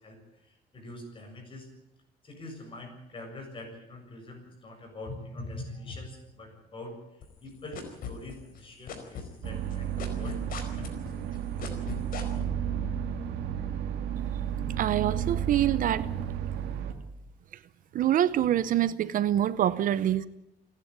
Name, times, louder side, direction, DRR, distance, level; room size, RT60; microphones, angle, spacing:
voice 1, 0.0-1.7 2.2-10.9 11.3-11.6, left 2 dB, 30° left, 4 dB, 7.2 m, -44 dB
sound 1, 7.2-8.6 8.9-12.4, left 7 dB, 60° left, 4.7 m, -38 dB
sound 2, 9.4-16.9, right 9 dB, 90° right, 2.3 m, -32 dB
voice 2, 14.8-16.1 17.9-20.3, right 11 dB, 55° right, 16 dB, 0.8 m, -25 dB
27.5 x 11.0 x 9.6 m, 0.87 s
cardioid pair, 140°, 17 cm